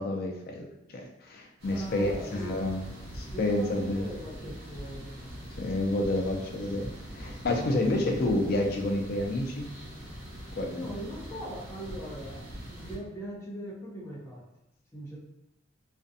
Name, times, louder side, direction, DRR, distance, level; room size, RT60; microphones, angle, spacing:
voice 1, 0.0-2.8 3.1-4.0 5.6-9.7 10.6-11.0, left 1 dB, 55° left, 1 dB, 0.5 m, -29 dB
sound 1, 1.6-13.0, equal, 75° right, 1.0 m, -43 dB
voice 2, 1.7-2.5 3.3-5.2 7.5-7.9 10.7-14.5 14.9-15.2, equal, 15° left, -5 dB, 0.7 m, -40 dB
2.4 x 2.2 x 2.6 m, 0.87 s
head